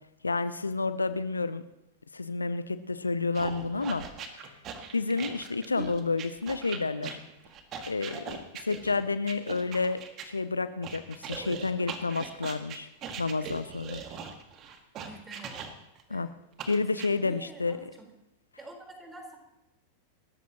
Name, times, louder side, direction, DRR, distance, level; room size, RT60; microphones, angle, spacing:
voice 1, 0.2-1.6 2.1-4.5 4.9-7.2 7.9-12.9 13.2-14.0 16.1-16.3 16.7-17.9, left 3 dB, 80° left, 13 dB, 0.6 m, -30 dB
sound 1, 3.4-10.3 10.8-16.0 16.6-17.1, right 6 dB, 35° right, 2.0 m, -41 dB
voice 2, 15.0-15.7 16.1-16.3 16.8-16.9 17.2-18.1 18.6-19.4, right 1 dB, 15° right, 2 dB, 4.2 m, -47 dB
29.0 x 14.5 x 3.0 m, 0.92 s
figure-of-eight pair, 90°, 0 cm